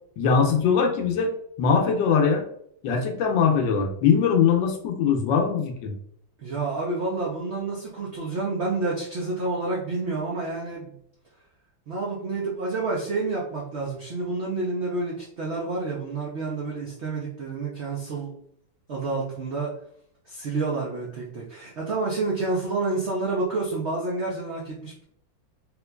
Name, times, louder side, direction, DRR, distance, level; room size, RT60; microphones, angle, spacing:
voice 1, 0.2-1.3 1.6-2.4 2.8-5.9, left 6 dB, 75° left, 3 dB, 1.2 m, -21 dB
voice 2, 6.4-10.9 11.9-18.3 18.9-19.7 20.3-25.0, right 3 dB, 70° right, -4 dB, 0.6 m, -29 dB
3.7 x 2.9 x 2.2 m, 0.69 s
omnidirectional pair, 2.0 m